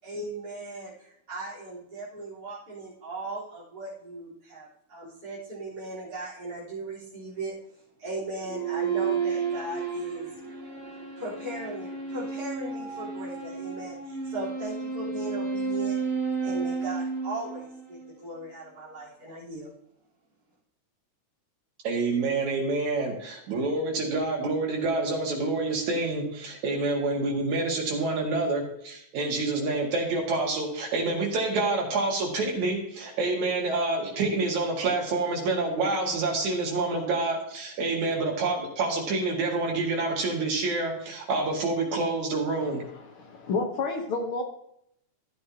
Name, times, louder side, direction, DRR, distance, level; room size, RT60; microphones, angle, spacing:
voice 1, 0.0-7.5 8.0-10.3 11.2-16.0 16.4-19.7, right 2 dB, 30° right, -12 dB, 4.4 m, -38 dB
sound 1, 8.5-18.1, right 5 dB, 45° right, 3.1 m, -32 dB
voice 2, 21.8-42.8, right 3 dB, 75° right, -1 dB, 3.5 m, -27 dB
voice 3, 42.9-44.4, left 3 dB, 55° left, 2 dB, 1.7 m, -30 dB
14.0 x 8.4 x 2.9 m, 0.75 s
omnidirectional pair, 3.3 m